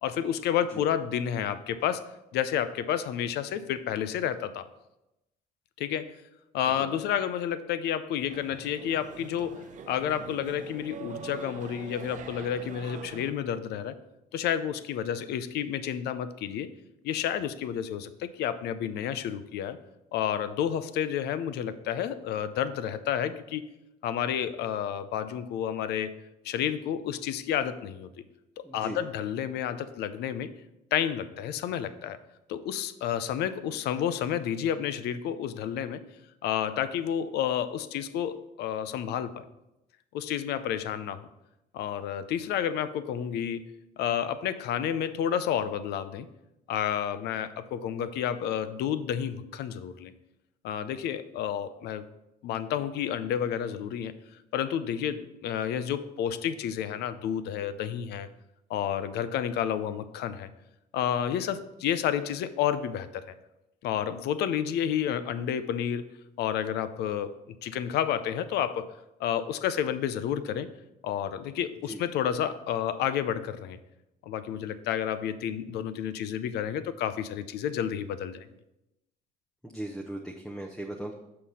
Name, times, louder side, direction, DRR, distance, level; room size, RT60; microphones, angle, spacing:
voice 1, 0.0-4.7 5.8-6.2 6.5-14.0 14.3-16.7 17.0-19.8 20.1-23.6 24.0-26.2 26.4-28.1 28.6-30.5 30.9-32.2 32.5-36.0 36.4-39.5 40.1-41.2 41.7-46.3 46.7-50.1 50.6-52.0 52.4-54.1 54.5-58.3 58.7-60.5 60.9-63.3 63.8-66.1 66.4-67.4 67.6-68.9 69.2-70.7 71.0-73.8 74.2-78.5, left 9 dB, 75° left, 13 dB, 0.6 m, -30 dB
sound 1, 8.3-13.3, right 7 dB, 50° right, 0.7 m, -44 dB
voice 2, 28.6-29.0 71.8-72.0 79.6-81.1, right 1 dB, 5° left, 1 dB, 0.7 m, -38 dB
6.6 x 5.7 x 5.4 m, 0.91 s
cardioid pair, 110°, 17 cm